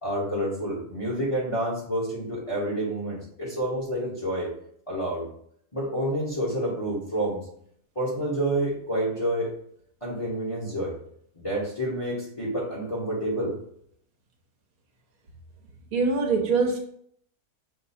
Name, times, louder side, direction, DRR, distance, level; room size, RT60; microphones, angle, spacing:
voice 1, 0.0-4.5 4.9-5.2 5.7-7.4 7.9-9.5 10.0-10.9 11.3-13.5, right 1 dB, 25° left, -5 dB, 1.0 m, -28 dB
voice 2, 15.9-16.8, right 4 dB, 70° right, 3 dB, 1.3 m, -23 dB
5.8 x 2.2 x 4.2 m, 0.67 s
omnidirectional pair, 1.6 m